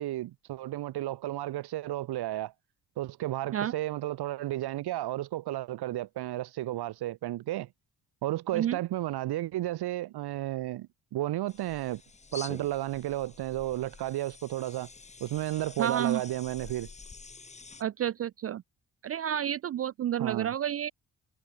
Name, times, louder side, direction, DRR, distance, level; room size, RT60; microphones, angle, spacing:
voice 1, 0.0-2.5 3.0-7.7 8.2-12.0 12.3-14.9 15.2-16.9 20.2-20.5, right 15 dB, 90° right, 1.6 m, -33 dB
sound 1, 11.5-17.8, left 4 dB, 20° left, 2.0 m, -48 dB
voice 2, 15.8-16.2 17.8-18.6 19.0-20.9, right 10 dB, 40° right, 0.4 m, -30 dB
cardioid pair, 170°, 38 cm